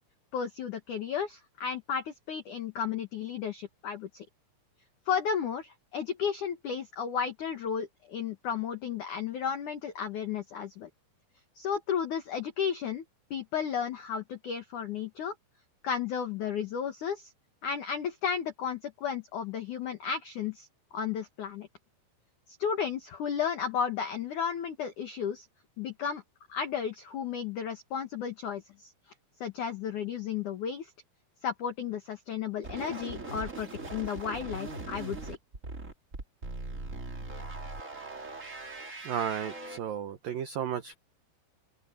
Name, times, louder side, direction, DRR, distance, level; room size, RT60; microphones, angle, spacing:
voice 1, 0.3-4.3 5.1-10.9 11.6-13.0 13.3-15.3 15.8-17.3 17.6-20.7 20.9-21.7 22.6-25.5 25.8-26.2 26.5-28.9 29.4-30.9 31.4-35.4, left 7 dB, 60° left, 2.1 m, -33 dB
sound 1, 32.6-39.8, right 2 dB, 25° right, 1.7 m, -40 dB
voice 2, 39.0-40.9, right 9 dB, 85° right, 1.9 m, -33 dB
open air
omnidirectional pair, 5.8 m